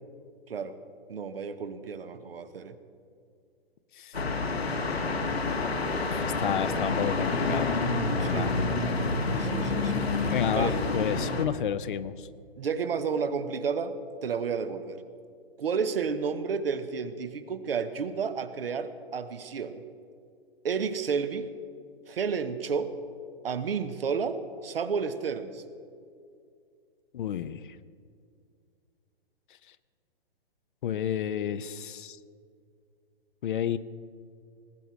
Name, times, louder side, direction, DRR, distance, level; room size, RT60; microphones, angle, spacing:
voice 1, 1.1-2.8 8.2-8.5 9.4-10.1 10.5-10.8 12.6-14.0 14.2-15.0 15.6-19.8 20.6-21.5 22.1-23.0 23.4-25.6, right 6 dB, 70° right, 11 dB, 1.1 m, -31 dB
sound 1, 4.1-11.4, left 3 dB, 90° left, 1.7 m, -28 dB
voice 2, 6.1-8.6 9.3-9.5 10.3-12.3 27.1-27.8 30.8-32.2 33.4-33.8, left 9 dB, 55° left, 15 dB, 0.7 m, -31 dB
19.0 x 6.8 x 7.5 m, 2.3 s
figure-of-eight pair, 125°, 30 cm